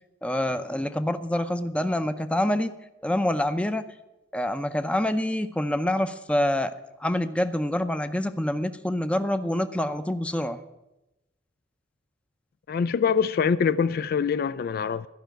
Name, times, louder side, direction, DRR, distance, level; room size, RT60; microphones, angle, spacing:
voice 1, 0.2-2.7 3.0-3.8 4.3-6.7 7.0-10.6, left 1 dB, 5° left, 0.6 m, -26 dB
voice 2, 12.7-15.1, left 6 dB, 50° left, 0.3 m, -24 dB
13.5 x 5.6 x 9.2 m
head